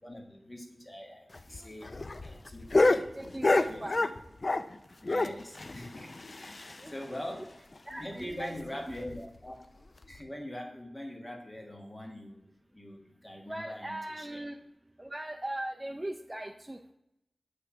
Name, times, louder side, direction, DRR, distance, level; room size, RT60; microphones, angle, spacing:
voice 1, 0.0-1.9 2.2-3.1 3.5-4.1 5.0-7.5 7.9-9.5 10.1-12.4 12.7-14.4, left 1 dB, 25° left, 1 dB, 1.5 m, -43 dB
sound 1, 1.3-4.8 5.1-7.0 7.3-7.4 7.7-7.8 8.2-8.3 8.9-9.2 10.0-10.2, left 2 dB, 50° left, 0.4 m, -28 dB
voice 2, 2.9-4.0 6.5-7.4 7.9-8.9 13.5-14.6 15.0-16.9, right 1 dB, 20° right, 4 dB, 0.4 m, -40 dB
8.1 x 3.4 x 5.7 m, 0.83 s
wide cardioid pair, 75°, 0 cm